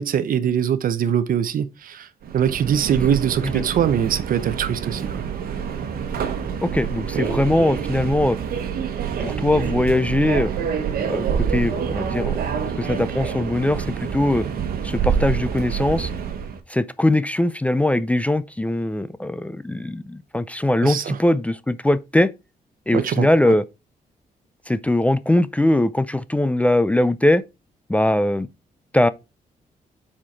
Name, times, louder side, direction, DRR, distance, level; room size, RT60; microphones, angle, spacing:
voice 1, 0.0-2.1 2.3-5.2 7.1-7.2 20.8-21.2 22.9-23.3, right 9 dB, 70° right, 0.8 m, -22 dB
Subway metro underground, 2.2-16.6, right 7 dB, 85° right, 1.2 m, -27 dB
voice 2, 2.9-3.6 6.6-8.4 9.2-10.5 11.1-12.4 12.8-14.5 14.8-16.1 16.7-22.3 22.9-23.6 24.7-27.4 27.9-28.5 28.9-29.1, left 1 dB, 10° left, 0.4 m, -21 dB
7.4 x 4.4 x 4.5 m
cardioid pair, 130°, 15 cm